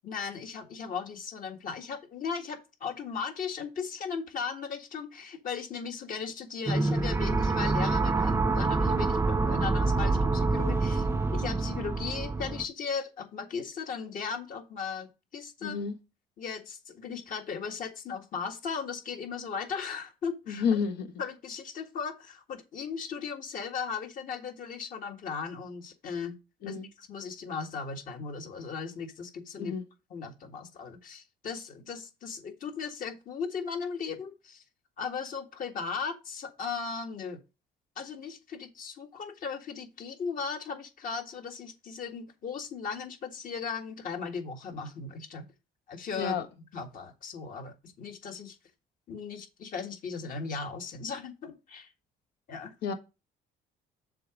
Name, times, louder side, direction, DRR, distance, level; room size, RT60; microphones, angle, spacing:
voice 1, 0.0-15.8 16.4-20.6 21.2-26.3 26.6-29.7 30.1-34.6 35.0-37.4 37.9-45.4 45.9-46.4 46.7-48.5 49.1-51.9 52.5-52.7, left 5 dB, 55° left, 1.7 m, -37 dB
alien sewers, 6.7-12.6, right 3 dB, 15° right, 0.5 m, -26 dB
voice 2, 15.6-16.0 20.5-21.2 26.6-26.9 29.6-29.8 46.2-46.5 52.8-52.9, left 6 dB, 80° left, 1.3 m, -30 dB
6.8 x 3.8 x 6.2 m
cardioid pair, 110°, 17 cm